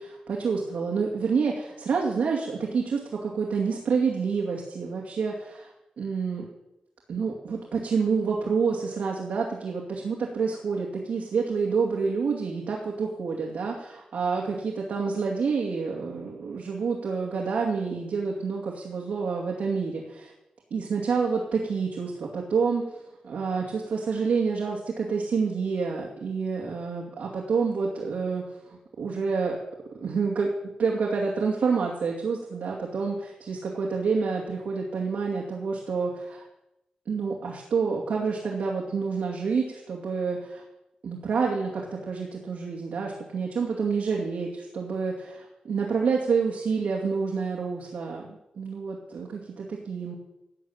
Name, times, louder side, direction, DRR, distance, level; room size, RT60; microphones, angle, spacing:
voice 1, 0.0-5.7 6.0-6.5 7.1-20.3 20.7-23.0 23.2-28.4 29.0-29.6 29.9-30.5 30.8-36.4 37.1-40.6 41.0-48.3 48.6-50.1, right 5 dB, 80° right, -1 dB, 2.5 m, -28 dB
13.0 x 7.7 x 9.0 m, 0.91 s
wide cardioid pair, 110°, 3 cm